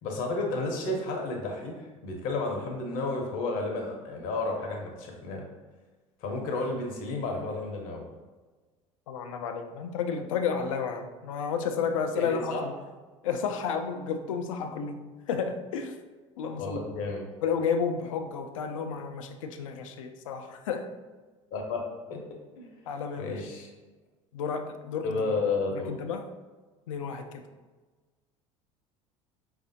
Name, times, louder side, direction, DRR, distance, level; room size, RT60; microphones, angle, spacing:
voice 1, 0.0-5.4 6.2-8.0 12.1-12.6 16.6-17.3 21.5-21.8 22.1-22.2 22.6-22.7 23.1-23.7 25.0-25.9, left 3 dB, 55° left, 1 dB, 0.8 m, -32 dB
voice 2, 9.1-12.7 13.2-15.0 15.3-16.0 16.4-16.8 17.4-20.9 22.9-23.4 24.3-25.2 25.7-26.3 26.9-27.4, left 6 dB, 75° left, 7 dB, 0.4 m, -31 dB
4.8 x 2.5 x 2.6 m, 1.3 s
figure-of-eight pair, 70°, 17 cm